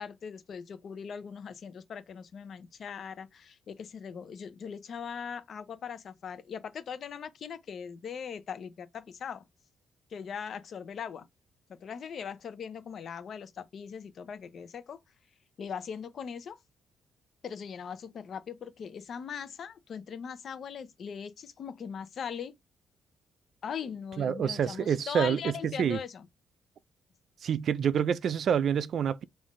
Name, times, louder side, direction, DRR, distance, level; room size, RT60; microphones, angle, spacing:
voice 1, 0.0-9.4 10.1-11.3 11.7-15.0 15.6-16.6 17.4-22.5 23.6-26.3, left 7 dB, 55° left, 0.6 m, -40 dB
voice 2, 24.2-26.0 27.4-29.2, right 8 dB, 60° right, 0.3 m, -27 dB
3.7 x 2.5 x 3.6 m
cardioid pair, 90°, 0 cm